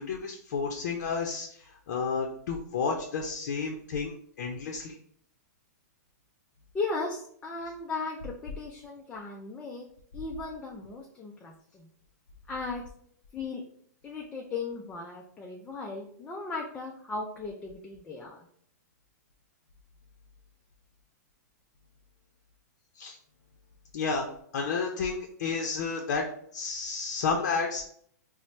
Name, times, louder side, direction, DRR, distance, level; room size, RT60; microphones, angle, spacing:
voice 1, 0.0-5.0 23.0-23.2 23.9-26.3 26.5-27.9, left 5 dB, 60° left, 1 dB, 0.5 m, -31 dB
voice 2, 6.7-9.9 10.1-11.9 12.5-12.8 13.3-13.6 14.0-18.5, left 3 dB, 10° left, 0 dB, 0.3 m, -37 dB
4.2 x 2.0 x 3.1 m, 0.63 s
hypercardioid pair, 150°, 9 cm